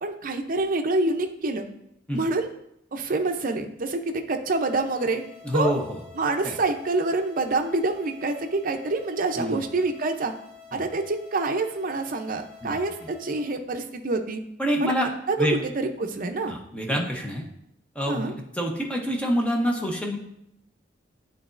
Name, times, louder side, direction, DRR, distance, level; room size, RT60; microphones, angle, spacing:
voice 1, 0.0-1.6 2.1-2.5 2.9-5.2 5.5-5.7 6.2-10.3 10.7-14.4 14.8-14.9 15.3-15.4 15.7-16.5 16.9-17.1 18.1-18.3, right 3 dB, 50° right, 6 dB, 0.6 m, -27 dB
sound 1, 4.5-13.5, left 6 dB, 10° right, 1.6 m, -48 dB
voice 2, 5.4-6.0 6.4-6.6 9.4-9.7 10.7-10.8 12.6-12.8 14.6-15.1 15.4-15.6 16.5-17.4 17.9-20.2, equal, 5° left, 0 dB, 0.8 m, -26 dB
10.0 x 4.0 x 2.5 m, 0.78 s
head